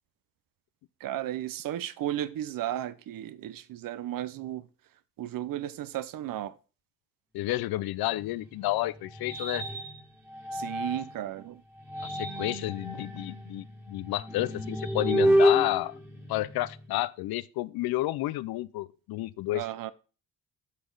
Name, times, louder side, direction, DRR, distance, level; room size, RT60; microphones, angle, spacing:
voice 1, 1.0-4.7 5.2-6.6 10.5-11.6 19.5-19.9, right 12 dB, 60° right, 0.7 m, -34 dB
voice 2, 7.3-9.6 12.1-15.9 16.3-19.6, left 16 dB, 75° left, 0.5 m, -31 dB
sound 1, 8.1-11.2 11.8-16.9, equal, 5° right, 1.8 m, -30 dB
8.5 x 6.1 x 3.8 m
cardioid pair, 95°, 37 cm